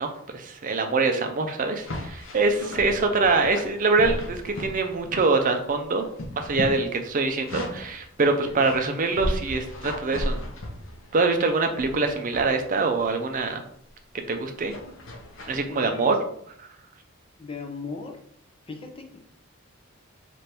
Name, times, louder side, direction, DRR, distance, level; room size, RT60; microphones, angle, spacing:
voice 1, 0.0-6.1 6.4-10.4 11.1-13.6 14.3-14.8 15.5-16.2, right 3 dB, 40° right, 5 dB, 0.5 m, -24 dB
sound 1, 1.8-5.7 5.9-8.0 8.4-11.2 11.7-12.5 13.0-13.2 14.7-15.6, left 1 dB, 65° left, 0.7 m, -35 dB
voice 2, 15.7-16.2 17.4-18.2 18.7-19.3, left 4 dB, 25° left, 4 dB, 0.5 m, -38 dB
3.3 x 2.6 x 4.3 m, 0.65 s
head